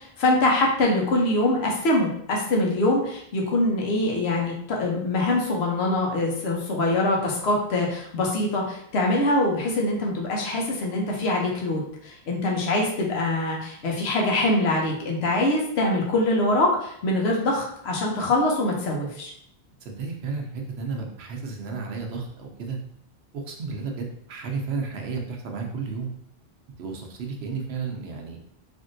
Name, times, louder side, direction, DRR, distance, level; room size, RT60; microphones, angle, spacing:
voice 1, 0.0-19.3, left 2 dB, 85° left, -1 dB, 1.0 m, -24 dB
voice 2, 19.8-22.8 23.3-26.1 26.8-28.4, right 4 dB, 80° right, 2 dB, 0.9 m, -32 dB
3.5 x 2.5 x 2.5 m, 0.68 s
omnidirectional pair, 1.1 m